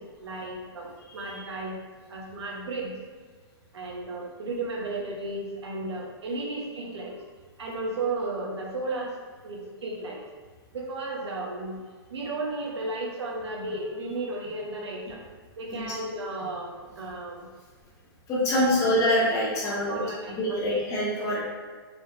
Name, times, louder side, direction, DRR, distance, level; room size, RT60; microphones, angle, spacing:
voice 1, 0.0-1.8 2.1-2.9 3.7-7.2 7.6-9.1 9.4-10.3 10.7-11.8 12.1-15.2 15.6-17.5 18.5-18.6 19.6-20.7, right 2 dB, 85° right, -2 dB, 1.1 m, -34 dB
voice 2, 1.1-1.4 15.7-16.0 18.3-20.0 20.3-21.4, left 1 dB, 25° left, -5 dB, 1.1 m, -25 dB
4.6 x 3.4 x 2.7 m, 1.5 s
hypercardioid pair, 150°, 14 cm